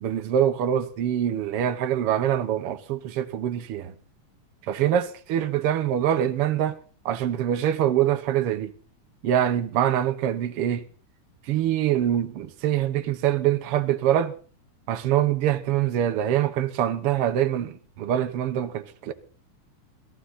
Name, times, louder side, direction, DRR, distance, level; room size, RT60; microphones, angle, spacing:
voice 1, 0.0-3.9 4.7-6.8 7.0-8.7 9.2-10.8 11.5-14.3 14.9-19.1, right 10 dB, 90° right, 1.2 m, -24 dB
19.5 x 14.5 x 4.2 m
omnidirectional pair, 4.2 m